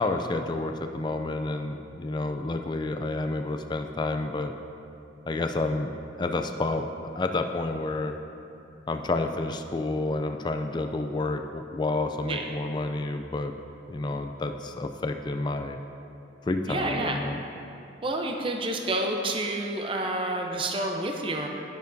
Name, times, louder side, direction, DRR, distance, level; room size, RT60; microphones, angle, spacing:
voice 1, 0.0-4.5 5.3-5.9 6.2-6.9 7.2-8.2 8.9-13.5 13.9-15.8 16.5-17.4, left 2 dB, 25° left, 6 dB, 0.3 m, -29 dB
voice 2, 16.7-17.2 18.0-21.5, right 2 dB, 30° right, 2 dB, 0.6 m, -29 dB
11.5 x 10.5 x 2.6 m, 2.8 s
head